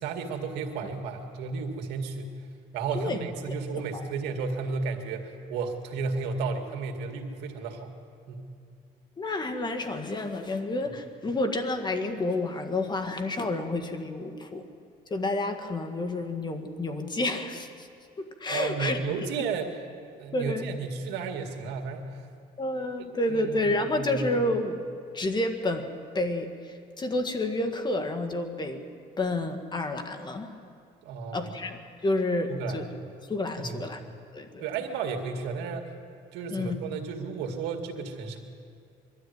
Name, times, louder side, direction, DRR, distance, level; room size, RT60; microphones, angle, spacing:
voice 1, 0.0-2.3 2.7-7.9 8.3-8.5 18.5-19.8 20.2-22.3 23.0-24.4 31.0-31.5 32.5-32.8 33.6-33.9 34.6-35.9 36.3-38.4, right 5 dB, 90° right, 4 dB, 2.2 m, -33 dB
voice 2, 3.7-4.1 9.2-14.6 15.1-17.9 18.2-19.0 19.4-19.5 20.3-20.7 22.6-24.8 25.1-25.9 26.1-28.8 29.2-30.5 31.3-32.9 33.3-34.0 34.3-34.6 36.5-36.8, left 2 dB, 25° left, 6 dB, 1.9 m, -30 dB
22.5 x 13.0 x 9.5 m, 2.3 s
cardioid pair, 110°, 17 cm